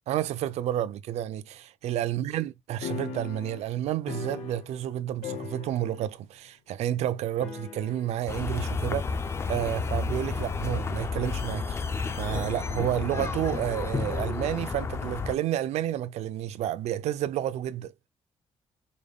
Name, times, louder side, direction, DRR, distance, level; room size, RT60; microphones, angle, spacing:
voice 1, 0.1-9.1 9.5-11.8 12.2-17.9, right 12 dB, 80° right, 0.4 m, -30 dB
sound 1, 2.8-4.9 5.2-6.2 6.5-6.6 7.4-8.2, left 7 dB, 85° left, 0.8 m, -39 dB
sound 2, 8.3-15.3, left 4 dB, 25° left, 0.3 m, -31 dB
5.0 x 2.2 x 3.5 m
cardioid pair, 180°, 11 cm